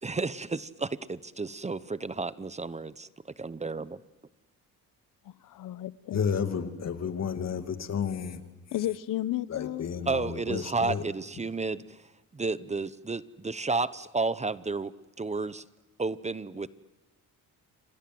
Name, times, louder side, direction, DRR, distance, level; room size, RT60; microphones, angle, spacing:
voice 1, 0.0-2.9 3.4-4.0 10.1-12.1 12.3-15.6 16.0-16.7, right 3 dB, 20° right, 15 dB, 0.9 m, -32 dB
voice 2, 5.2-6.2 8.7-9.9, left 13 dB, 70° left, 16 dB, 1.0 m, -33 dB
voice 3, 6.1-8.4 9.5-11.0, left 7 dB, 50° left, 7 dB, 2.5 m, -31 dB
29.0 x 26.0 x 7.8 m, 1.2 s
cardioid pair, 95°, 34 cm